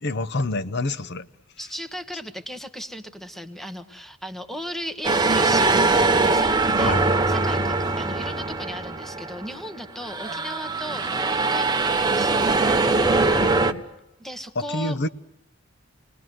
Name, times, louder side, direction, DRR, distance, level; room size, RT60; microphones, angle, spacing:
voice 1, 0.0-1.3 6.8-7.0 13.6-13.8 14.6-15.1, left 2 dB, 55° left, 0.9 m, -27 dB
voice 2, 1.6-12.7 14.2-15.0, equal, ahead, 1.3 m, -36 dB
sound 1, 5.0-9.6 10.0-13.7, right 3 dB, 20° right, 1.1 m, -22 dB
28.0 x 20.5 x 7.7 m
head